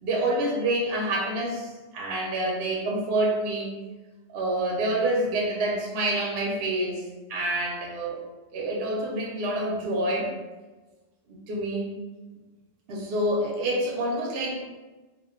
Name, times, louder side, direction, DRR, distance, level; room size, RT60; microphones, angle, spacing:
voice 1, 0.0-3.7 4.3-7.0 7.3-8.2 8.5-10.3 11.5-11.9 12.9-14.5, right 1 dB, 65° right, -2 dB, 0.7 m, -27 dB
2.3 x 2.2 x 3.5 m, 1.2 s
omnidirectional pair, 1.3 m